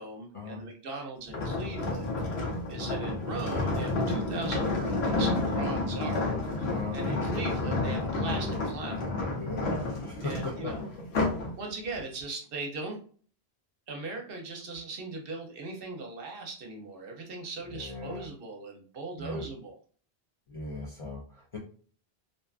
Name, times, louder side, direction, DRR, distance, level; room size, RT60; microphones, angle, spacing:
voice 1, 0.0-2.2 2.7-6.3 6.9-9.1 10.2-10.8 11.6-13.0 13.9-19.8, right 3 dB, 65° right, 2 dB, 0.8 m, -39 dB
sound 1, 1.3-11.5 11.9-12.2, left 2 dB, 90° left, 1.0 m, -30 dB
voice 2, 6.7-7.2 9.3-10.7 17.7-18.3 19.2-19.5 20.5-21.6, left 2 dB, 45° left, -3 dB, 0.4 m, -38 dB
2.6 x 2.3 x 2.3 m, 0.43 s
omnidirectional pair, 1.0 m